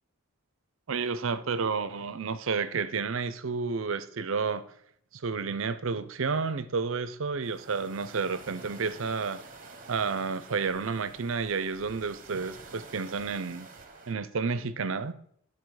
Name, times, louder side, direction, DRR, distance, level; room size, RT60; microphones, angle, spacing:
voice 1, 0.9-4.7 5.1-9.4 9.9-13.7 14.1-15.1, right 5 dB, 70° right, 0.6 m, -31 dB
sound 1, 7.4-14.1, right 3 dB, 40° right, 1.0 m, -49 dB
12.0 x 4.1 x 4.8 m
head